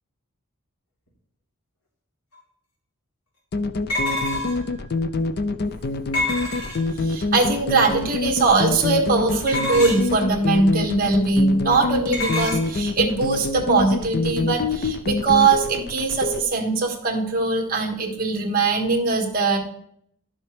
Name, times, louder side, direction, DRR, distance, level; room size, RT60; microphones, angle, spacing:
sound 1, 2.3-2.4 3.9-4.7 6.1-7.0 9.5-10.2 12.1-12.6, left 2 dB, 90° left, 3.7 m, -27 dB
sound 2, 3.5-16.4, left 3 dB, 45° left, 0.5 m, -26 dB
voice 1, 7.0-19.6, right 3 dB, 40° right, 2 dB, 1.7 m, -21 dB
11.5 x 7.0 x 3.3 m, 0.69 s
head